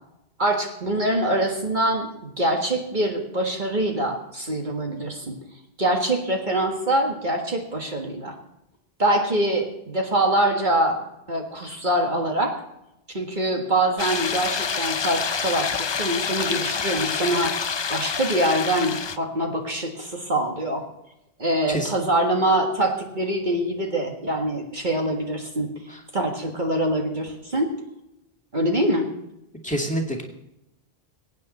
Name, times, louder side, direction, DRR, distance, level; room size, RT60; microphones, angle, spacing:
voice 1, 0.4-5.3 5.8-8.4 9.0-11.0 11.3-12.5 13.1-17.5 17.9-20.9 21.4-25.7 26.1-27.7 28.5-29.1, right 1 dB, 50° right, 2 dB, 1.8 m, -24 dB
sound 1, 14.0-19.2, left 6 dB, 40° left, 0.4 m, -27 dB
voice 2, 29.6-30.2, right 1 dB, 5° left, 1 dB, 2.3 m, -27 dB
23.0 x 9.2 x 4.2 m, 0.88 s
omnidirectional pair, 1.1 m